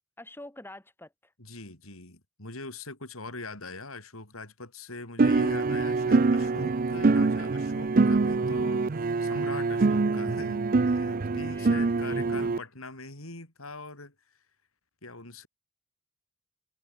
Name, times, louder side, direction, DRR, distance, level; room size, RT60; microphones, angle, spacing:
voice 1, 0.2-1.3 11.3-12.5, left 1 dB, 10° left, 4.5 m, -47 dB
voice 2, 1.4-14.1 15.0-15.5, left 3 dB, 85° left, 7.3 m, -42 dB
sound 1, 5.2-12.6, right 3 dB, 40° right, 0.5 m, -25 dB
head